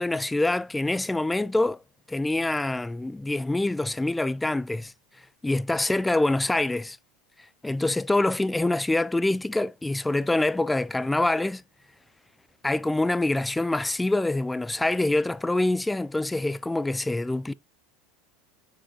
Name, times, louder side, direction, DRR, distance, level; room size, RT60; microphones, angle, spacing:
voice 1, 0.0-1.8 2.1-4.9 5.4-7.0 7.6-11.6 12.6-17.5, left 2 dB, 10° left, 0.4 m, -25 dB
8.6 x 4.8 x 2.9 m
hypercardioid pair, 95°, 0 cm